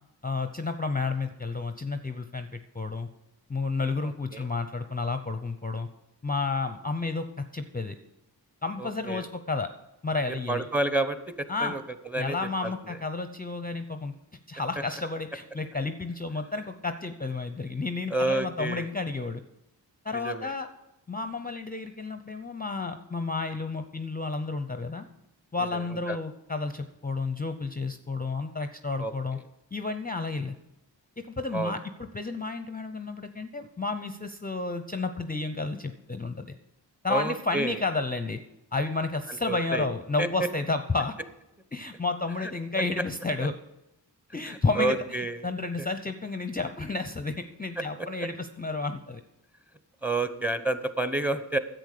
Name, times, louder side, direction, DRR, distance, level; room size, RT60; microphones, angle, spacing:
voice 1, 0.2-3.1 3.5-5.9 6.2-8.0 8.6-9.7 10.0-10.7 11.5-11.8 12.2-14.1 14.5-19.4 20.0-20.7 21.1-25.1 25.5-29.4 29.7-30.6 31.2-36.6 37.0-38.4 38.7-41.2 41.7-43.5 44.3-49.2, left 3 dB, 20° left, 8 dB, 0.6 m, -31 dB
voice 2, 4.0-4.5 8.8-9.2 10.5-11.8 12.1-12.4 12.6-13.0 18.1-18.9 20.1-20.5 25.7-26.2 29.0-29.1 31.5-31.7 37.1-37.8 39.5-39.9 40.2-40.5 44.5-45.4 45.8-45.9 47.8-47.9 50.0-51.6, right 2 dB, 5° right, 11 dB, 0.9 m, -29 dB
10.5 x 8.0 x 6.6 m, 0.91 s
wide cardioid pair, 60°, 44 cm